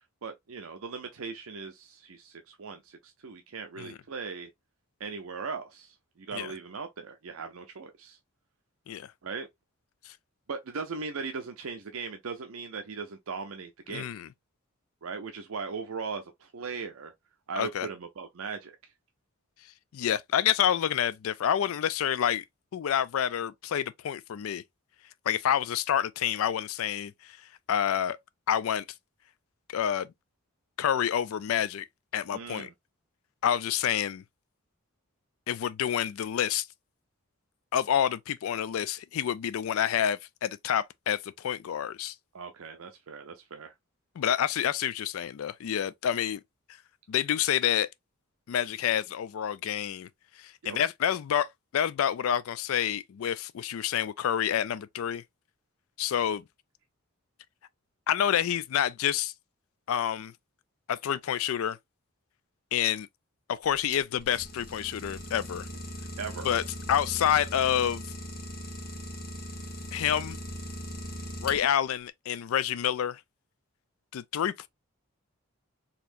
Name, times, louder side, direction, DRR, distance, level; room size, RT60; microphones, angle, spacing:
voice 1, 0.2-4.5 5.0-8.2 9.2-9.5 10.5-14.1 15.0-17.1 17.5-18.8 32.3-32.7 42.3-43.7 50.6-50.8 66.2-66.5, right 5 dB, 75° right, 0.6 m, -38 dB
voice 2, 13.9-14.3 17.6-17.9 19.9-22.4 22.7-24.6 25.3-27.4 27.7-28.2 28.5-28.8 29.7-30.1 30.8-31.9 32.1-32.7 33.4-34.2 35.5-36.7 37.7-42.1 44.2-46.4 47.1-47.9 48.5-50.1 50.4-55.2 56.0-56.4 58.1-59.3 59.9-60.3 60.9-61.8 62.7-63.1 63.5-65.7 66.4-66.6 66.9-68.0 69.9-70.4 71.4-73.2 74.1-74.7, left 9 dB, 75° left, 0.3 m, -28 dB
Idling, 63.6-72.0, equal, 45° left, 1.1 m, -40 dB
4.1 x 2.8 x 2.5 m
head